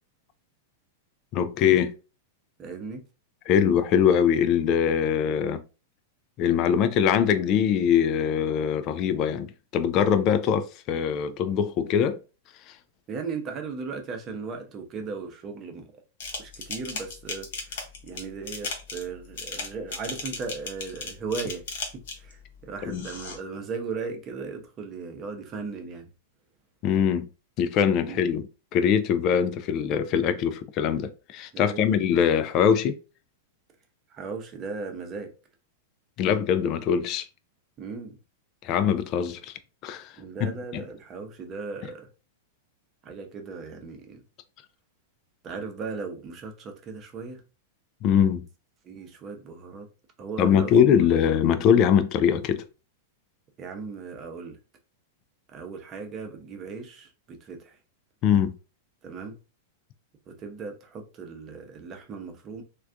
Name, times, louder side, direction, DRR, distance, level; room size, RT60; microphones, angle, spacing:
voice 1, 1.3-1.9 3.5-5.6 6.4-12.2 22.8-23.0 26.8-27.3 27.6-28.5 28.7-32.9 36.2-37.3 38.6-39.5 39.8-40.1 40.4-40.8 48.0-48.4 50.4-52.6 58.2-58.5, left 8 dB, 40° left, 0.3 m, -22 dB
voice 2, 2.6-3.0 13.1-16.0 16.4-21.6 22.2-26.1 28.0-28.2 31.5-32.0 34.1-35.3 36.6-36.7 37.8-38.2 40.1-42.1 43.0-44.2 45.4-47.4 48.8-49.9 50.2-51.1 53.6-54.6 55.5-57.8 59.0-59.4 60.3-62.6, right 4 dB, 30° right, 0.7 m, -37 dB
sound 1, 16.2-22.3 22.9-23.4, left 4 dB, 60° left, 0.8 m, -36 dB
3.2 x 2.3 x 2.5 m
figure-of-eight pair, 95°, 0 cm